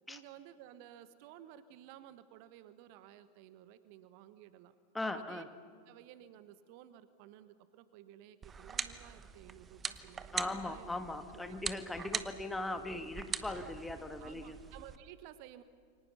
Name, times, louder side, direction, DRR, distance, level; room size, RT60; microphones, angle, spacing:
voice 1, 0.1-4.7 5.1-5.4 5.9-10.9 11.3-11.9 14.2-15.6, right 12 dB, 45° right, 13 dB, 1.2 m, -55 dB
voice 2, 4.9-5.4 10.3-14.6, left 2 dB, 5° left, 7 dB, 1.6 m, -39 dB
sound 1, 8.4-15.0, right 6 dB, 20° right, 1.0 m, -42 dB
28.0 x 24.5 x 5.8 m, 2.2 s
figure-of-eight pair, 90°, 0 cm